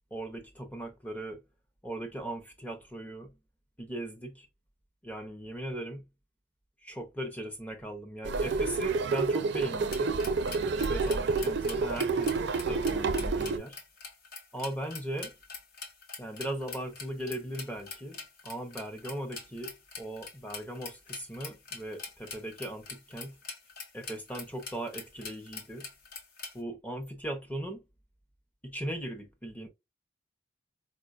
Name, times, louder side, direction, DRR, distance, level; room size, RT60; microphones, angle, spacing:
voice 1, 0.1-1.4 1.8-3.3 3.8-4.5 5.0-6.0 6.8-10.2 10.6-12.4 12.6-13.8 14.5-15.3 16.2-18.2 18.4-23.4 23.9-25.9 26.5-27.8 28.6-29.7, right 1 dB, 10° left, 0.6 m, -38 dB
sound 1, 8.3-13.6, right 4 dB, 60° right, 0.4 m, -29 dB
sound 2, 9.9-26.6, left 4 dB, 50° left, 0.8 m, -44 dB
4.6 x 2.2 x 2.4 m
head